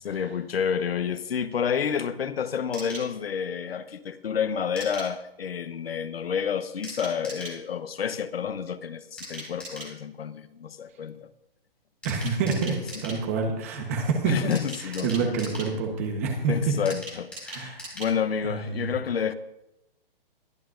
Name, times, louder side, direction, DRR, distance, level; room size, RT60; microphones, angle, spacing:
voice 1, 0.0-11.3 14.2-15.3 16.5-19.3, left 7 dB, 90° left, 1.0 m, -29 dB
sound 1, 2.7-3.1 4.8-5.1 6.8-7.6 9.2-9.9 12.0-13.2 14.5-15.7 16.9-18.1 18.4-18.5 18.8-18.9, right 1 dB, 5° left, 5.3 m, -40 dB
voice 2, 12.0-14.5 14.8-16.8 17.5-17.9 18.4-18.9, right 4 dB, 15° right, 1.1 m, -28 dB
21.5 x 11.0 x 2.6 m
hypercardioid pair, 180°, 29 cm